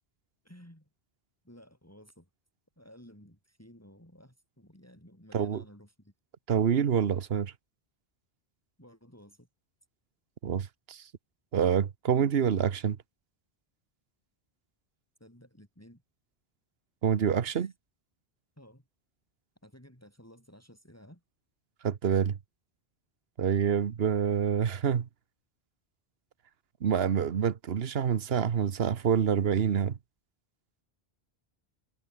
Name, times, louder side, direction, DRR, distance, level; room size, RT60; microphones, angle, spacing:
voice 1, 0.4-0.9 1.4-2.3 2.8-6.1 8.8-9.5 15.2-16.0 17.5-17.7 18.6-18.9 19.6-21.2, equal, 15° left, 6.9 m, -54 dB
voice 2, 6.5-7.5 10.4-11.0 11.5-13.0 17.0-17.7 21.8-22.3 23.4-25.1 26.8-30.0, right 7 dB, 75° right, 1.2 m, -27 dB
omnidirectional pair, 1.0 m